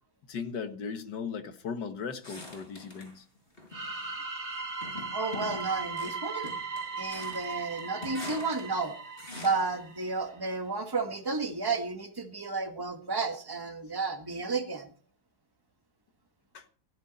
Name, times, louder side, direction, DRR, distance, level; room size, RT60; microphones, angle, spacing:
voice 1, 0.3-3.3 16.5-16.7, left 6 dB, 80° left, 9 dB, 2.2 m, -37 dB
sound 1, 2.2-3.2 3.6-4.1 4.8-9.8, left 2 dB, 30° left, 5.9 m, -45 dB
sound 2, 3.7-10.4, right 4 dB, 65° right, 3.4 m, -38 dB
voice 2, 5.1-6.5 7.0-9.0 9.3-14.9, right 4 dB, 15° right, 5 dB, 1.9 m, -32 dB
16.5 x 15.0 x 4.2 m, 0.40 s
omnidirectional pair, 1.8 m